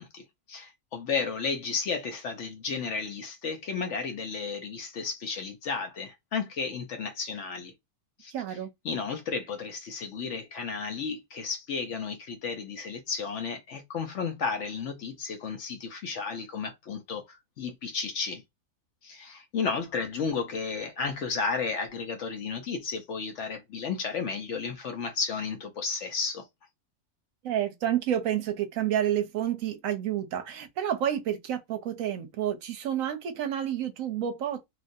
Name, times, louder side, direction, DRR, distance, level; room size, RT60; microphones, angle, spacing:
voice 1, 0.0-7.7 8.2-8.3 8.8-18.4 19.0-26.5, left 5 dB, 65° left, 0.8 m, -33 dB
voice 2, 8.3-8.7 27.4-34.7, right 10 dB, 70° right, 0.9 m, -29 dB
3.0 x 2.5 x 2.5 m
omnidirectional pair, 1.6 m